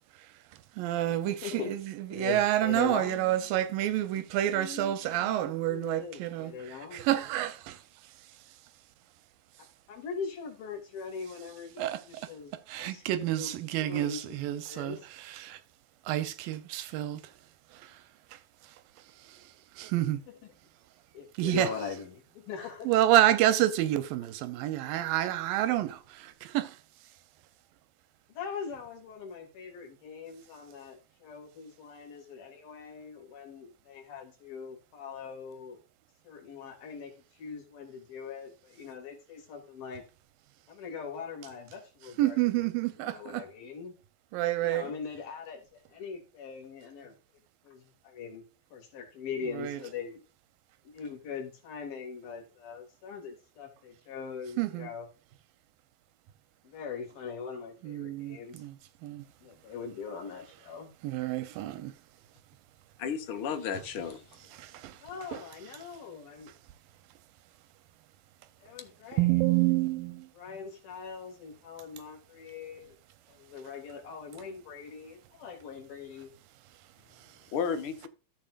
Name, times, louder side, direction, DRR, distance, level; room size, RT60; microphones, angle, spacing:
voice 1, 0.1-8.2 11.8-15.6 16.1-17.3 17.7-18.0 18.3-20.2 21.4-21.7 22.8-26.8 42.2-43.5 44.3-44.9 49.5-49.8 54.6-54.9 57.8-59.3 61.0-61.9 64.5-65.0 65.3-65.4 69.1-70.3 77.2-77.4, right 14 dB, 85° right, 2.5 m, -29 dB
voice 2, 1.3-1.7 2.1-3.5 4.4-7.1 9.9-13.0 13.3-14.2 14.7-15.0 21.1-22.9 28.3-35.8 36.2-40.0 40.7-42.7 43.0-44.0 44.6-47.1 47.6-48.4 48.7-50.2 50.8-55.1 56.6-58.6 59.4-60.9 65.0-66.5 68.6-69.3 70.4-72.9 73.3-76.3, left 6 dB, 90° left, 4.4 m, -41 dB
voice 3, 63.0-64.2 77.5-78.1, left 7 dB, 60° left, 1.4 m, -32 dB
13.5 x 7.5 x 2.5 m
omnidirectional pair, 4.0 m